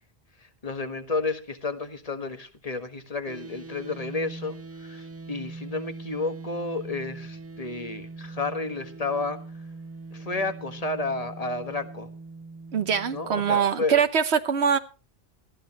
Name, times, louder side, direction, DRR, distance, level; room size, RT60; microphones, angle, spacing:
voice 1, 0.6-9.4 10.1-12.1 13.1-14.0, left 3 dB, 35° left, 8 dB, 1.6 m, -31 dB
sound 1, 3.3-13.6, right 3 dB, 15° right, 0.5 m, -42 dB
voice 2, 12.7-14.8, right 7 dB, 90° right, 9 dB, 1.2 m, -23 dB
19.5 x 14.0 x 3.0 m, 0.34 s
omnidirectional pair, 1.1 m